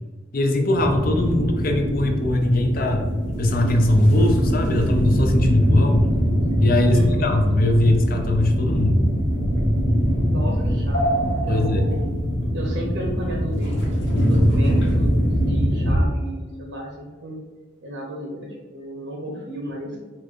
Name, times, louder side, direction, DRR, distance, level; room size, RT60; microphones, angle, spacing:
voice 1, 0.3-3.1 3.4-6.1 6.6-9.0 11.5-11.8, left 1 dB, 45° left, 4 dB, 0.5 m, -20 dB
sound 1, 0.7-16.0, equal, 80° left, 1.4 m, -22 dB
voice 2, 6.9-7.3 10.2-11.0 11.4-12.0 12.5-13.8 14.1-17.4 17.8-20.0, equal, 75° right, -1 dB, 0.8 m, -33 dB
4.3 x 2.4 x 4.5 m, 1.3 s
head